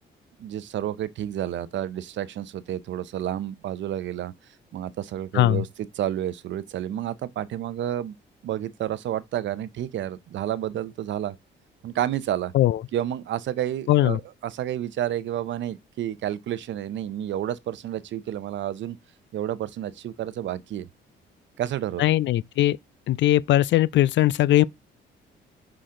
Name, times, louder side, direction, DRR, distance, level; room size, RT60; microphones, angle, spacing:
voice 1, 0.4-4.3 4.7-8.1 8.4-11.3 11.8-12.5 12.9-19.0 19.3-20.9 21.6-22.1, right 11 dB, 70° right, 0.7 m, -30 dB
voice 2, 13.9-14.2 22.0-22.8 23.1-24.6, left 14 dB, 65° left, 0.4 m, -20 dB
5.8 x 5.0 x 3.7 m
cardioid pair, 90°, 20 cm